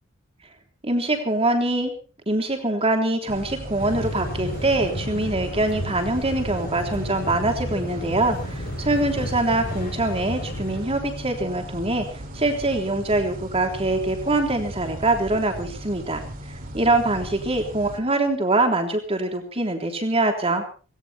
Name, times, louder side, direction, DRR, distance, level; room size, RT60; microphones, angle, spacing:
voice 1, 0.8-1.9 2.3-12.1 12.3-16.2 16.7-20.6, right 2 dB, 30° right, 4 dB, 3.5 m, -23 dB
sound 1, 3.3-18.0, equal, 45° right, 3.5 m, -37 dB
sound 2, 3.8-10.8, equal, 45° left, 7.0 m, -32 dB
18.0 x 18.0 x 4.4 m, 0.38 s
head